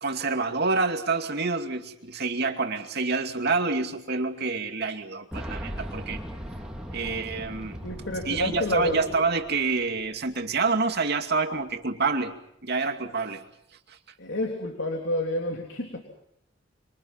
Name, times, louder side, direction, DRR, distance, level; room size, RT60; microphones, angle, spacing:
voice 1, 0.0-6.2 6.9-7.8 8.3-12.3 12.6-13.4, right 4 dB, 60° right, 5 dB, 2.5 m, -27 dB
Boom, 5.3-10.1 10.3-10.4 11.5-11.6, equal, 5° right, 4.3 m, -38 dB
voice 2, 7.8-9.0 14.2-16.0, left 1 dB, 65° left, 3 dB, 3.5 m, -29 dB
26.5 x 26.0 x 5.9 m, 0.75 s
head